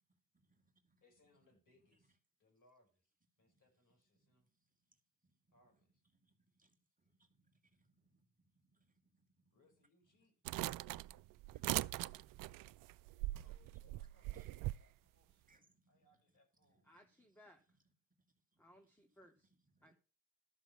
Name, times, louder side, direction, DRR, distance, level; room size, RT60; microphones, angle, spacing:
voice 1, 0.3-1.0 3.4-3.6 4.9-5.3 6.1-9.5 13.7-13.8 14.3-14.5 15.5-16.1 16.9-17.1 18.5-18.8 19.8-19.9, right 2 dB, 25° right, 2.1 m, -78 dB
voice 2, 1.0-4.5 5.5-6.0 9.5-10.3 13.3-16.9, left 2 dB, 60° left, 5.8 m, -74 dB
sound 1, 10.5-14.8, right 17 dB, 65° right, 0.5 m, -41 dB
voice 3, 16.8-17.6 18.6-19.5 19.8-19.9, equal, 5° left, 2.3 m, -64 dB
13.0 x 6.0 x 5.8 m
hypercardioid pair, 45°, 35 cm